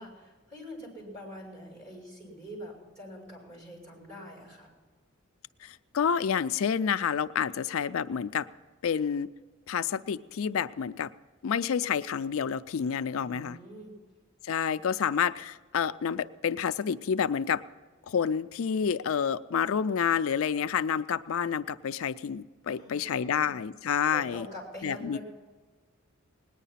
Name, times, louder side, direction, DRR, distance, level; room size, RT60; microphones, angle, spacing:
voice 1, 0.0-4.7 13.1-13.9 22.7-23.5 24.1-25.2, equal, 30° right, -3 dB, 5.5 m, -45 dB
voice 2, 5.6-8.5 8.8-9.3 9.7-11.1 11.4-13.6 14.4-17.6 18.1-24.5 24.8-25.2, left 7 dB, 70° left, 12 dB, 0.4 m, -29 dB
19.0 x 10.0 x 5.7 m, 1.4 s
head